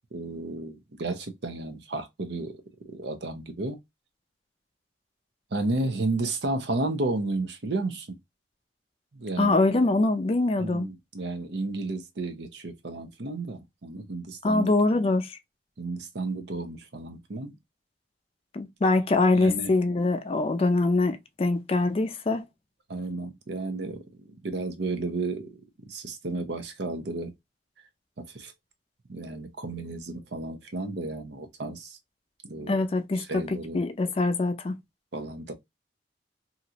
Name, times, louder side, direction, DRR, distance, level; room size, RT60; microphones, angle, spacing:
voice 1, 0.1-2.6 2.8-3.8 5.5-8.2 9.1-9.5 10.6-14.7 15.8-17.5 19.3-19.7 22.9-25.6 25.9-27.3 28.2-28.5 29.1-32.0 32.4-32.8 33.2-33.8 35.1-35.5, right 2 dB, 70° right, 0.7 m, -32 dB
voice 2, 9.4-10.9 14.4-15.4 18.5-22.4 32.7-34.8, left 2 dB, 35° left, 0.4 m, -24 dB
2.9 x 2.5 x 2.7 m
head